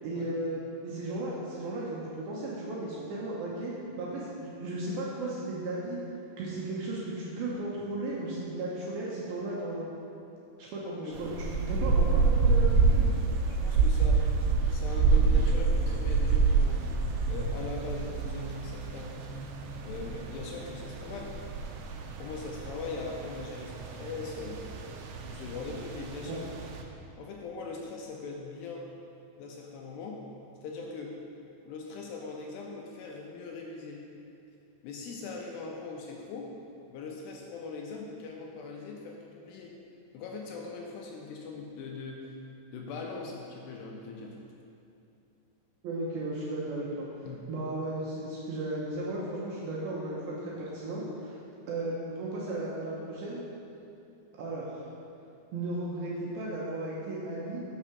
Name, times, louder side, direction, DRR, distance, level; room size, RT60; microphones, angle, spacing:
voice 1, 0.0-6.0 6.4-9.9 10.6-13.1 26.3-26.4 45.8-47.1 47.5-51.4 51.7-53.4 54.4-54.9 55.5-57.6, right 2 dB, 75° right, -5 dB, 2.4 m, -35 dB
sound 1, 11.1-26.8, right 4 dB, 90° right, 2.9 m, -28 dB
voice 2, 13.5-14.3 14.7-16.9 17.3-19.2 19.8-21.4 22.2-24.6 25.3-26.4 27.2-28.9 29.4-30.2 30.6-31.2 31.6-34.1 34.8-36.5 36.9-39.8 40.1-42.3 42.7-44.4 47.2-47.5, left 4 dB, 80° left, 0 dB, 2.6 m, -40 dB
6.7 x 5.9 x 6.0 m, 2.7 s
omnidirectional pair, 5.1 m